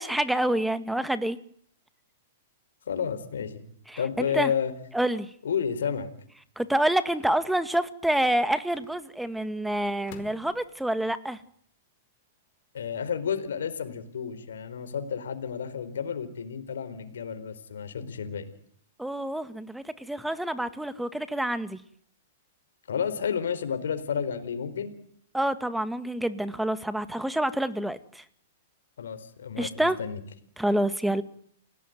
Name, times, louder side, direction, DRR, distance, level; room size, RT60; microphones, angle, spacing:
voice 1, 0.0-1.4 3.9-4.5 4.9-5.3 6.6-11.4 19.0-21.8 25.3-28.2 29.6-30.0 30.6-31.2, right 1 dB, 5° right, 12 dB, 1.8 m, -27 dB
voice 2, 2.9-3.6 4.0-4.7 5.4-6.1 12.7-18.5 22.9-24.9 29.0-30.2, left 7 dB, 75° left, 9 dB, 4.3 m, -31 dB
sound 1, 4.0-4.5 5.8-6.1 7.2-7.9 8.7-9.4 10.1-10.8, left 9 dB, 50° left, 4.7 m, -51 dB
29.5 x 17.5 x 9.3 m, 0.64 s
hypercardioid pair, 120°, 0 cm